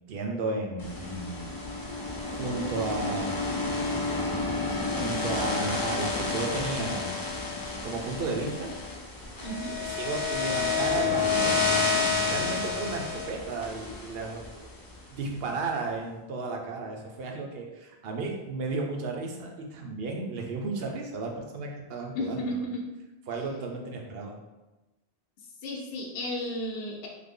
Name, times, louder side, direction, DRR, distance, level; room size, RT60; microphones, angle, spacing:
voice 1, 0.1-1.5 2.3-3.7 5.0-7.1 7.8-8.7 10.0-11.7 12.0-14.7 15.1-22.5 23.3-24.4, right 3 dB, 65° right, 1 dB, 0.8 m, -34 dB
sound 1, 0.8-15.0, left 4 dB, 35° left, 0.3 m, -30 dB
voice 2, 9.4-9.8 22.1-22.9 25.6-27.1, equal, 65° left, -1 dB, 0.8 m, -33 dB
3.2 x 2.0 x 3.6 m, 1.1 s
omnidirectional pair, 1.1 m